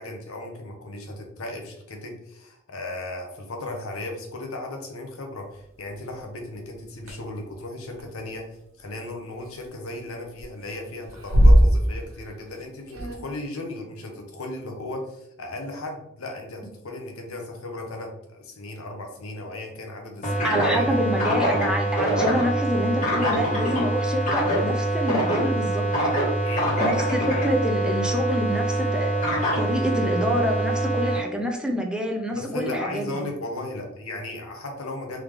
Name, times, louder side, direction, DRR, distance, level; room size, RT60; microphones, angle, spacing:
voice 1, 0.0-20.9 26.4-26.8 32.3-35.2, left 2 dB, 85° left, 3 dB, 0.9 m, -36 dB
sound 1, 6.2-6.3 7.1-7.2 7.9-8.0 9.5-10.0 10.3-10.7 11.0-12.3 12.6-12.7 12.9-13.2, equal, 70° right, 1.1 m, -18 dB
sound 2, 20.2-31.2, right 1 dB, 40° left, 1.6 m, -24 dB
voice 2, 20.4-25.8 26.8-29.1 29.6-33.2, equal, 5° right, 2 dB, 0.4 m, -27 dB
3.6 x 3.1 x 3.5 m, 0.78 s
head